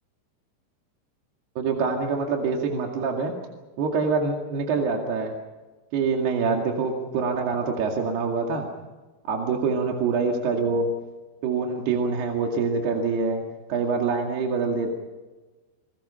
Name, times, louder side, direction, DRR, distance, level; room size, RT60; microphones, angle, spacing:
voice 1, 1.6-3.3 3.8-5.3 5.9-8.7 9.3-10.9 11.4-13.4 13.7-14.9, right 4 dB, 60° right, 1 dB, 3.9 m, -25 dB
30.0 x 21.0 x 5.7 m, 1.2 s
omnidirectional pair, 5.7 m